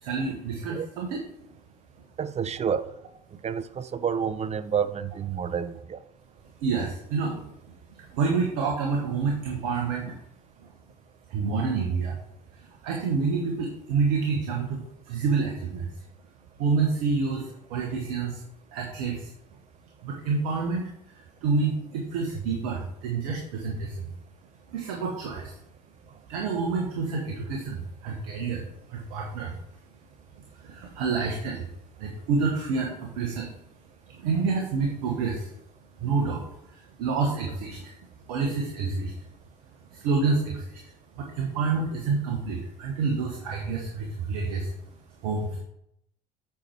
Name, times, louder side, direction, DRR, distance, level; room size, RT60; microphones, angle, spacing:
voice 1, 0.0-1.2 6.6-7.4 8.0-10.2 11.3-12.1 12.8-15.9 16.6-18.4 18.7-19.3 20.0-20.9 21.4-24.1 24.7-25.6 26.3-29.5 30.6-31.7 32.0-33.5 34.1-35.5 36.0-37.9 38.3-39.1 39.9-40.8 41.2-44.7 45.2-45.6, right 4 dB, 70° right, 1 dB, 1.5 m, -28 dB
voice 2, 2.2-2.8 3.4-6.0, right 7 dB, 30° right, 14 dB, 0.7 m, -29 dB
8.6 x 5.9 x 4.6 m, 0.79 s
hypercardioid pair, 65°, 21 cm